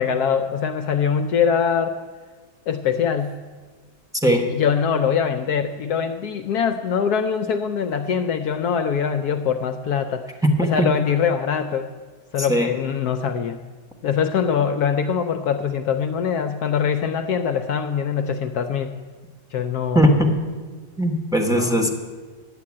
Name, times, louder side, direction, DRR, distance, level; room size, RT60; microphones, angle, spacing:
voice 1, 0.0-2.0 2.7-3.4 4.5-10.3 10.6-11.9 12.3-13.6 14.0-18.9 19.5-20.0 21.5-21.8, left 7 dB, 70° left, 8 dB, 1.0 m, -23 dB
voice 2, 10.4-10.9 12.4-12.7 19.9-20.4 21.0-21.9, equal, 5° right, 2 dB, 0.9 m, -19 dB
10.5 x 7.6 x 8.5 m, 1.4 s
omnidirectional pair, 1.9 m